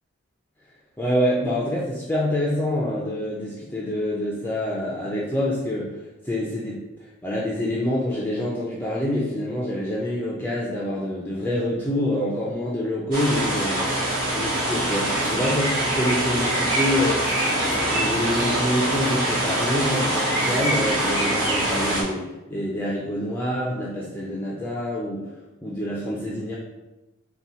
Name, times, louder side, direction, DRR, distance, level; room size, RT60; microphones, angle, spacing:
voice 1, 1.0-25.2 25.6-26.5, left 1 dB, 10° left, -5 dB, 0.4 m, -26 dB
sound 1, 13.1-22.0, right 1 dB, 40° right, 1.3 m, -24 dB
4.0 x 2.2 x 4.0 m, 1.0 s
head